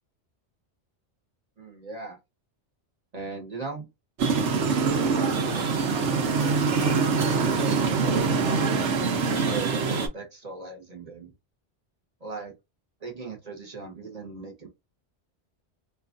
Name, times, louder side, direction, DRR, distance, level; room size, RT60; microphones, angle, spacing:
voice 1, 1.6-2.2 3.1-3.9 5.1-8.6 9.4-11.3 12.2-12.5 13.0-14.7, right 4 dB, 35° right, 1.1 m, -39 dB
sound 1, 4.2-10.1, right 5 dB, 80° right, 1.1 m, -24 dB
2.9 x 2.4 x 2.5 m
omnidirectional pair, 1.2 m